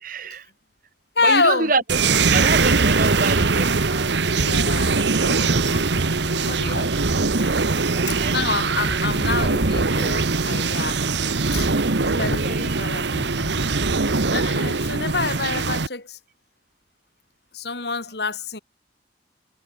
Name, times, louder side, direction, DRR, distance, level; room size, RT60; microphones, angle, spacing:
voice 1, 0.0-0.5 1.2-2.0 2.3-4.2 7.7-8.6 11.3-11.8 12.2-12.8 13.8-13.9, right 3 dB, 45° right, 1.6 m, -27 dB
voice 2, 1.2-1.7 4.4-7.0 8.1-11.0 11.5-11.7 12.0-13.6 14.3-16.2 17.5-18.6, left 3 dB, 60° left, 2.7 m, -27 dB
sound 1, 1.9-15.9, right 3 dB, 70° right, 1.2 m, -21 dB
head